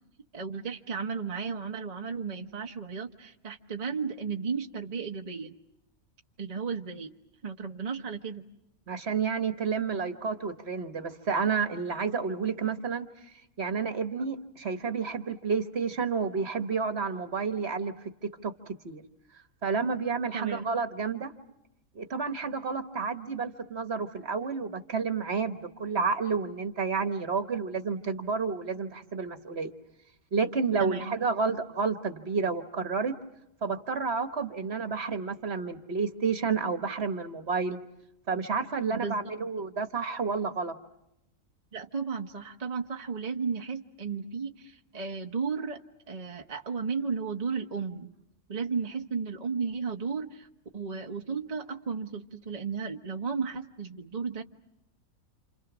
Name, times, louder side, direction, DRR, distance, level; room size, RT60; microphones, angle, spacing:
voice 1, 0.3-5.5 6.4-7.1 7.4-8.4 20.3-20.6 30.8-31.1 38.9-39.2 41.7-48.1 48.5-50.5 50.7-54.4, right 5 dB, 30° right, 3 dB, 1.1 m, -34 dB
voice 2, 8.9-13.1 13.6-17.9 18.2-18.5 18.8-19.0 19.6-21.3 21.9-29.7 30.3-33.2 33.6-37.8 38.3-40.7, right 5 dB, 50° right, 8 dB, 1.5 m, -30 dB
29.0 x 28.0 x 6.1 m, 0.84 s
omnidirectional pair, 1.5 m